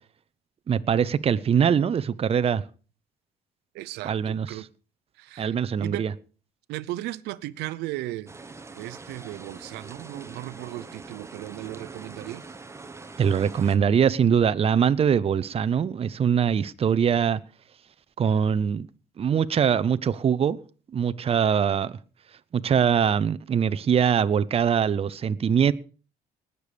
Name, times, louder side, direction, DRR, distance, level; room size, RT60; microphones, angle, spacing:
voice 1, 0.7-2.6 4.0-4.5 5.4-6.1 13.2-17.4 18.2-18.9 19.2-20.6 20.9-22.0 22.5-25.7, right 7 dB, 35° right, 0.7 m, -22 dB
voice 2, 3.7-4.7 5.2-6.1 6.7-8.3 8.8-12.4, right 16 dB, 85° right, 0.7 m, -36 dB
sound 1, 8.3-13.8, right 3 dB, 15° right, 1.0 m, -43 dB
19.5 x 6.9 x 5.1 m
cardioid pair, 110°, 17 cm